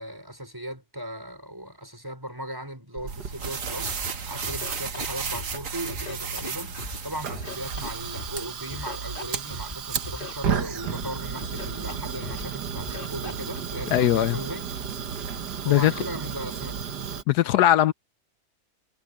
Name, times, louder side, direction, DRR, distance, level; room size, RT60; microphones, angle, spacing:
voice 1, 0.0-4.0 4.3-14.7 15.6-16.8 17.4-17.5, right 1 dB, 10° right, 5.3 m, -37 dB
Fire, 3.0-17.2, right 7 dB, 85° right, 1.9 m, -34 dB
sound 1, 3.1-8.4, right 5 dB, 55° right, 1.7 m, -34 dB
Scratching (performance technique), 3.8-4.1 4.4-5.6 5.9-7.0 7.3-8.4 8.7-9.7 10.0-11.1 11.4-12.0 12.2-12.5 12.8-13.6, left 2 dB, 30° left, 3.1 m, -38 dB
voice 2, 13.9-14.4 15.6-15.9 17.3-17.9, left 13 dB, 80° left, 1.2 m, -19 dB
omnidirectional pair, 1.7 m